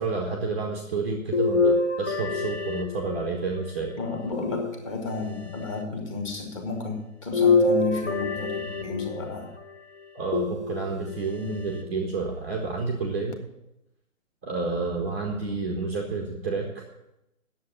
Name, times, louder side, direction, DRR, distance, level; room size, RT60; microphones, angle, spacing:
voice 1, 0.0-4.0 10.1-13.4 14.4-16.8, right 4 dB, 10° right, -1 dB, 0.6 m, -30 dB
sound 1, 1.3-3.6 4.3-5.3 7.3-9.4 10.3-11.2 11.8-11.9 13.3-13.4, left 3 dB, 55° left, 1.4 m, -25 dB
voice 2, 4.0-9.5, left 4 dB, 25° left, 3 dB, 1.7 m, -32 dB
9.6 x 7.4 x 8.7 m, 0.87 s
figure-of-eight pair, 140°, 41 cm